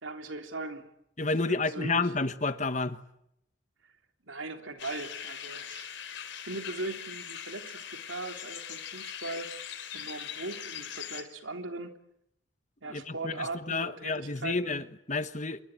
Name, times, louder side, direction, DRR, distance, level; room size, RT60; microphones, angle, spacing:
voice 1, 0.0-0.9 1.2-2.1 4.2-5.9 6.5-9.5 9.9-11.9 12.8-14.8, right 2 dB, 85° right, 3.4 m, -39 dB
voice 2, 1.2-3.0 12.9-15.6, left 3 dB, 40° left, 1.2 m, -30 dB
sound 1, 4.8-11.2, left 9 dB, 65° left, 4.0 m, -41 dB
26.5 x 23.0 x 9.1 m
head